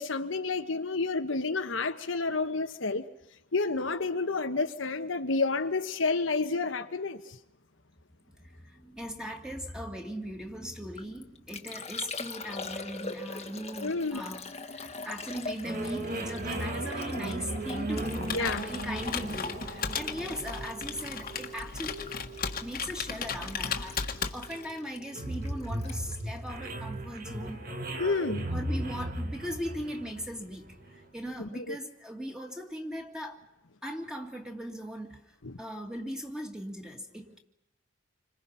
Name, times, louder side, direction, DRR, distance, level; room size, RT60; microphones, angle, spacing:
voice 1, 0.0-3.0 3.5-7.2 13.8-14.2 18.3-18.6 28.0-28.5 31.4-31.8 35.4-35.5, left 3 dB, 75° left, 1.3 m, -30 dB
voice 2, 8.4-22.1 22.6-27.6 28.5-33.4 33.8-35.2 35.6-37.4, equal, 5° right, 2.4 m, -39 dB
Liquid, 10.7-27.4 27.6-28.2, left 4 dB, 30° left, 1.5 m, -43 dB
sound 1, 15.6-31.0, right 1 dB, 50° right, 2.0 m, -37 dB
Computer keyboard, 17.9-24.8, left 6 dB, 50° left, 1.7 m, -36 dB
28.5 x 25.5 x 5.7 m
head